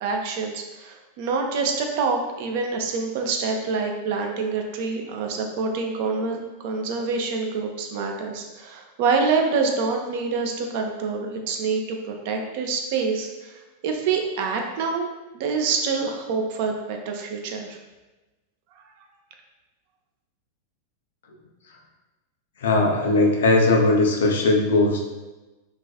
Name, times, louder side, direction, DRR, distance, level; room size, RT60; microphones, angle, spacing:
voice 1, 0.0-15.1 15.3-17.8, right 4 dB, 50° right, 2 dB, 0.3 m, -26 dB
voice 2, 22.6-25.1, left 2 dB, 60° left, 1 dB, 0.4 m, -19 dB
2.4 x 2.2 x 2.3 m, 1.1 s
figure-of-eight pair, 90°, 0 cm